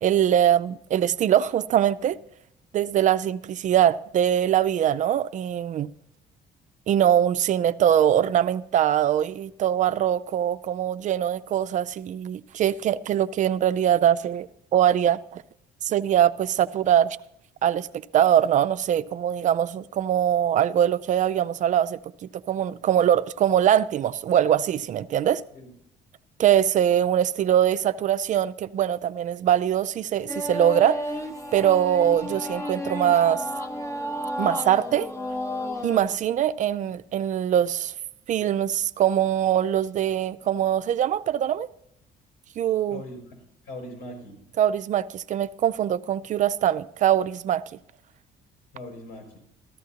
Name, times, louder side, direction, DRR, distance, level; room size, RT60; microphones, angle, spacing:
voice 1, 0.0-2.2 2.7-5.9 6.9-15.4 15.8-17.2 17.6-17.9 18.1-22.0 22.5-25.4 26.4-31.0 31.5-33.4 34.4-35.1 35.8-37.9 38.3-41.7 42.6-43.0 44.6-47.6, right 10 dB, 50° right, 0.4 m, -22 dB
sound 1, 30.3-36.2, equal, 15° left, 0.8 m, -32 dB
voice 2, 42.9-44.4 48.7-49.4, left 1 dB, 80° left, 5.4 m, -40 dB
14.0 x 13.0 x 2.8 m
cardioid pair, 110°, 17 cm